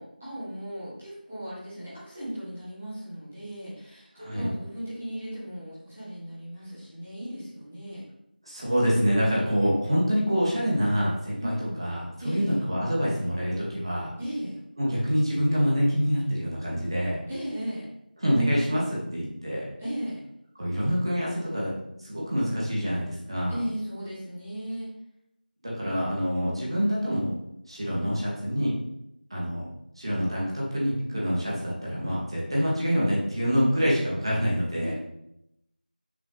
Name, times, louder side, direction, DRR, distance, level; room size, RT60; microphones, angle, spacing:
voice 1, 0.0-8.0 11.4-11.8 12.2-12.6 14.2-14.6 17.3-17.9 19.8-20.2 23.5-24.9 34.8-34.9, equal, 5° right, -11 dB, 0.7 m, -36 dB
voice 2, 4.2-4.5 8.5-14.1 14.8-17.2 18.2-19.7 20.6-21.7 22.0-23.5 25.6-27.3 27.7-28.7 29.3-29.7 30.0-34.9, equal, 30° right, -5 dB, 2.0 m, -26 dB
6.1 x 6.0 x 3.2 m, 0.81 s
figure-of-eight pair, 175°, 5 cm